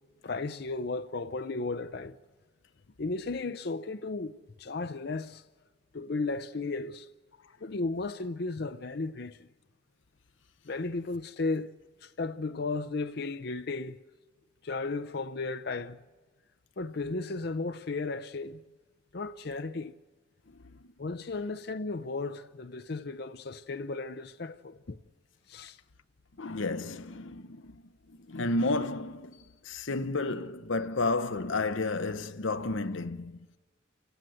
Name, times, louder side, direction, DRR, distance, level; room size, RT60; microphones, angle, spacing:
voice 1, 0.2-2.2 3.0-5.4 5.9-7.1 7.6-9.5 10.7-11.7 12.0-14.0 14.6-16.0 16.8-18.6 19.1-19.9 21.0-25.0 25.5-25.8, left 3 dB, 55° left, 0.7 m, -35 dB
voice 2, 26.4-27.7 28.1-29.4 29.6-33.5, left 2 dB, 85° left, 0.9 m, -32 dB
30.0 x 17.0 x 7.8 m
head